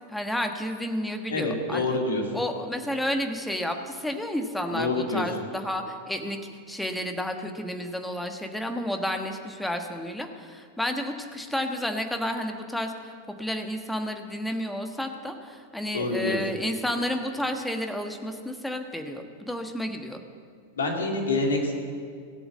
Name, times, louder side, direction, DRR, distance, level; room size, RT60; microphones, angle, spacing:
voice 1, 0.1-2.0 2.3-6.4 6.7-13.1 13.4-20.2, left 1 dB, 5° left, 5 dB, 1.4 m, -31 dB
voice 2, 1.3-2.2 4.7-5.2 15.9-16.4 20.8-21.7, left 2 dB, 70° left, 1 dB, 2.5 m, -26 dB
17.5 x 7.8 x 7.4 m, 2.2 s
figure-of-eight pair, 90°, 0 cm